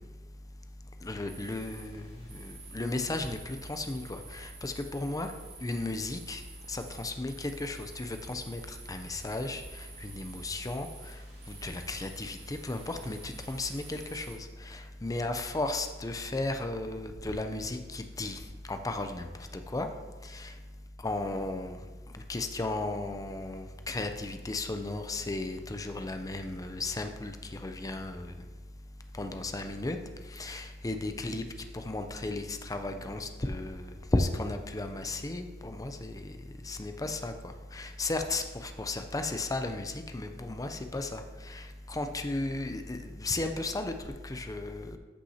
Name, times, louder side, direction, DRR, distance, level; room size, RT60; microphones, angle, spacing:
voice 1, 1.0-5.3 5.6-6.4 6.7-10.9 11.5-18.4 18.7-19.3 19.7-19.9 20.3-20.5 21.0-21.8 22.3-28.3 29.2-30.0 30.3-31.4 31.7-36.3 36.6-43.9 44.2-45.0, left 2 dB, 20° left, 6 dB, 0.5 m, -35 dB
sound 1, 1.3-14.4, right 4 dB, 50° right, 2.9 m, -50 dB
13.5 x 5.8 x 2.8 m, 1.3 s
head